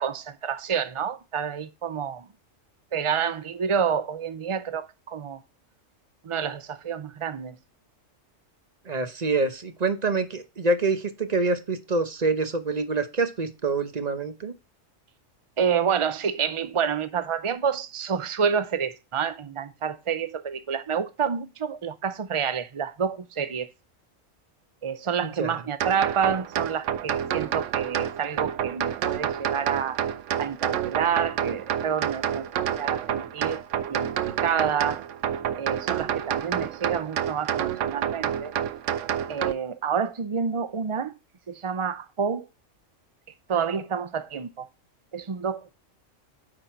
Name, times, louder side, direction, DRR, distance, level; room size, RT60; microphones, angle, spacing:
voice 1, 0.0-2.3 2.9-5.4 6.2-7.6 15.6-23.7 24.8-30.0 30.4-33.6 33.9-34.1 34.4-35.0 35.6-38.5 39.3-41.1 41.5-42.4 43.5-44.7 45.1-45.7, right 7 dB, 55° right, 0.3 m, -28 dB
voice 2, 8.8-14.5 25.2-25.6, right 3 dB, 35° right, 1.0 m, -26 dB
sound 1, 25.8-39.5, right 9 dB, 75° right, 1.0 m, -28 dB
9.6 x 4.0 x 4.4 m
omnidirectional pair, 1.3 m